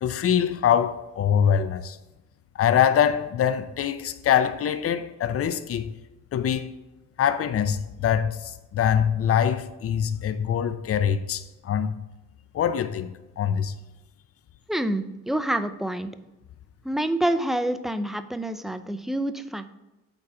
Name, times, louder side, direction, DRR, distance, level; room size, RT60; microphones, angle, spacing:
voice 1, 0.0-2.0 2.5-5.9 6.3-6.7 7.2-12.0 12.5-13.7, left 8 dB, 50° left, 0.7 m, -24 dB
voice 2, 14.7-16.1 16.8-19.7, right 1 dB, ahead, 0.6 m, -27 dB
9.0 x 4.1 x 5.7 m
cardioid pair, 90°, 30 cm